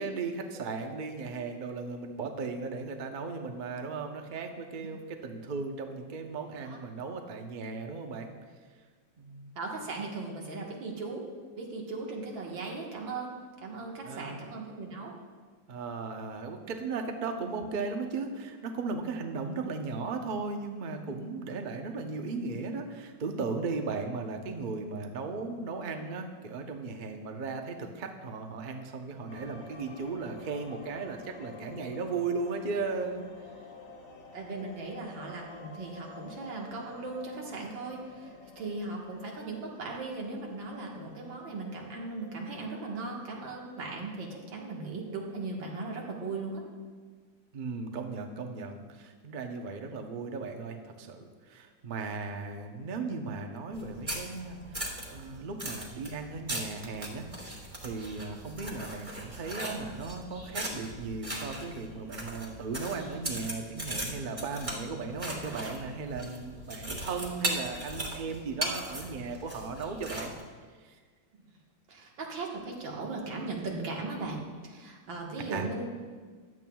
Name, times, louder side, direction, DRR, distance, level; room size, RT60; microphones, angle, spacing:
voice 1, 0.0-8.3 9.2-9.5 14.0-14.4 15.7-33.3 47.5-57.3 57.8-70.3 70.8-71.0 75.5-75.7, right 4 dB, 50° right, 4 dB, 0.5 m, -36 dB
voice 2, 9.6-11.2 11.6-15.1 34.3-46.6 71.9-75.9, right 3 dB, 90° right, -1 dB, 2.2 m, -38 dB
sound 1, 29.3-46.0, left 4 dB, 55° left, 1.2 m, -51 dB
sound 2, 53.7-70.4, right 1 dB, 20° right, 1.3 m, -39 dB
14.5 x 10.5 x 2.3 m, 1.5 s
omnidirectional pair, 2.0 m